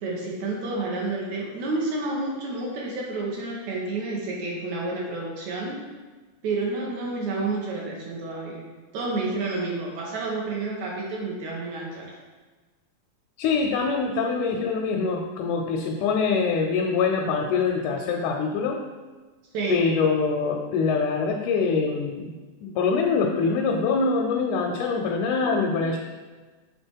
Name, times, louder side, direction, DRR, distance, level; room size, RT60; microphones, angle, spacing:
voice 1, 0.0-5.8 6.4-8.6 8.9-12.1 19.5-19.8, right 3 dB, 75° right, -3 dB, 2.2 m, -30 dB
voice 2, 13.4-18.8 19.7-22.3 22.6-26.0, left 4 dB, 90° left, 1 dB, 2.1 m, -24 dB
7.1 x 3.5 x 4.5 m, 1.3 s
omnidirectional pair, 3.4 m